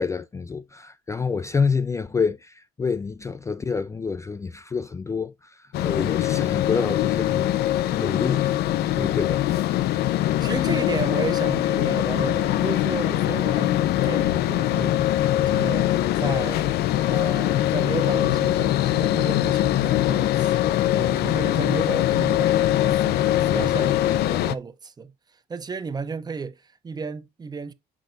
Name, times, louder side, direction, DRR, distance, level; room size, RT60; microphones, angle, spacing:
voice 1, 0.0-7.5 7.9-8.5 9.0-9.4, left 5 dB, 20° left, 0.3 m, -27 dB
sound 1, 5.7-24.5, left 13 dB, 75° left, 0.5 m, -22 dB
voice 2, 10.4-15.1 15.5-16.6 17.1-27.7, right 5 dB, 25° right, 0.7 m, -33 dB
7.5 x 6.1 x 2.6 m
cardioid pair, 110°, 17 cm